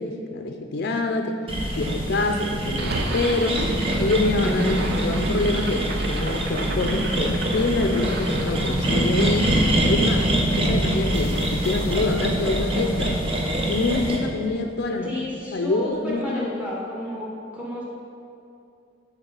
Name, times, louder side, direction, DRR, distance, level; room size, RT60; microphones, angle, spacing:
voice 1, 0.0-1.4 1.7-3.6 4.0-9.5 9.9-13.2 13.7-15.1 15.5-16.4, left 2 dB, 60° left, 4 dB, 0.5 m, -25 dB
sound 1, 1.5-14.2, right 1 dB, 30° right, 0.9 m, -24 dB
sound 2, 2.7-14.9, right 2 dB, 60° right, 0.6 m, -34 dB
voice 2, 15.0-17.3 17.5-17.8, left 1 dB, 5° right, -5 dB, 1.5 m, -32 dB
7.0 x 4.2 x 5.3 m, 2.5 s
head